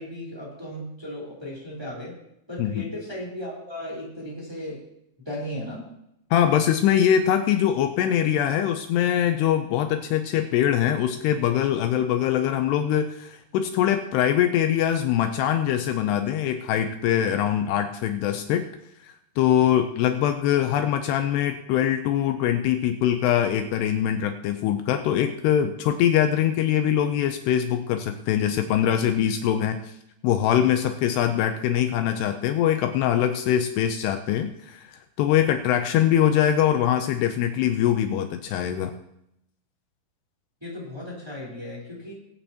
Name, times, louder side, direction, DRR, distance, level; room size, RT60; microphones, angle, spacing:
voice 1, 0.0-2.2 2.5-4.8 5.2-5.8 40.6-42.1, left 1 dB, 5° right, -4 dB, 3.2 m, -36 dB
voice 2, 2.6-2.9 6.3-18.7 19.0-29.9 30.2-38.9, left 10 dB, 90° left, 7 dB, 2.4 m, -23 dB
22.0 x 8.8 x 2.9 m, 0.79 s
omnidirectional pair, 5.4 m